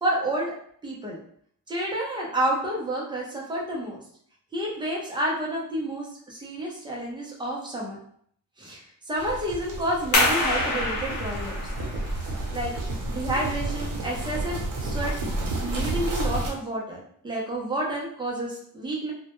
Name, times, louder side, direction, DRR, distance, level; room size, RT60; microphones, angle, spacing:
voice 1, 0.0-0.5 0.8-1.2 1.7-4.0 4.5-8.0 8.6-8.8 9.1-11.7 12.5-12.7 13.1-15.1 15.6-19.1, right 1 dB, 15° right, -3 dB, 0.4 m, -30 dB
sound 1, 9.2-16.5, right 2 dB, 65° right, 0.7 m, -31 dB
sound 2, 10.1-15.5, left 1 dB, 60° left, 0.7 m, -28 dB
2.1 x 2.0 x 2.9 m, 0.63 s
wide cardioid pair, 170°, 35 cm